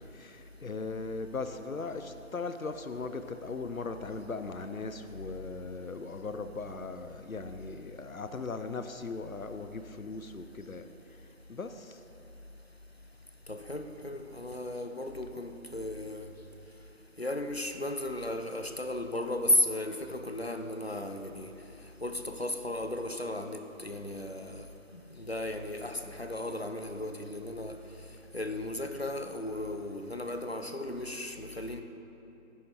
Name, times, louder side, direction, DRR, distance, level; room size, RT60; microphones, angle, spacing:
voice 1, 0.1-10.9 11.5-12.0, left 3 dB, 85° left, 9 dB, 0.7 m, -38 dB
voice 2, 13.5-16.3 17.2-21.5 22.0-24.7 24.9-27.8 28.3-31.8, left 1 dB, 50° left, 6 dB, 0.6 m, -34 dB
10.5 x 8.1 x 4.3 m, 3.0 s
figure-of-eight pair, 175°, 41 cm